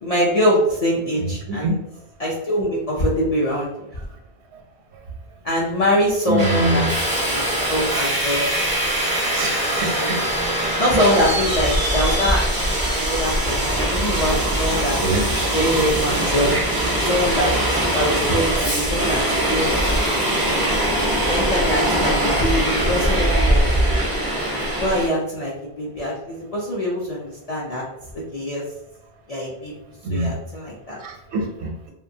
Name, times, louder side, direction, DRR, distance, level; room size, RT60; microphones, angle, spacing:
voice 1, 0.0-1.8 2.2-3.9 5.4-8.5 9.8-10.1 10.8-15.0 15.3-16.6 17.0-20.6 21.2-23.7 24.5-25.5 25.8-27.8 28.3-28.6 29.3-29.7 30.1-31.0, equal, 55° left, -5 dB, 0.4 m, -24 dB
voice 2, 6.3-6.9 9.3-10.5 15.0-15.2 30.0-30.4 31.0-31.9, right 2 dB, 80° right, 2 dB, 0.9 m, -24 dB
Subway metro underground, 6.4-25.1, right 1 dB, 30° right, 0.4 m, -21 dB
2.6 x 2.2 x 2.6 m, 0.90 s
omnidirectional pair, 1.1 m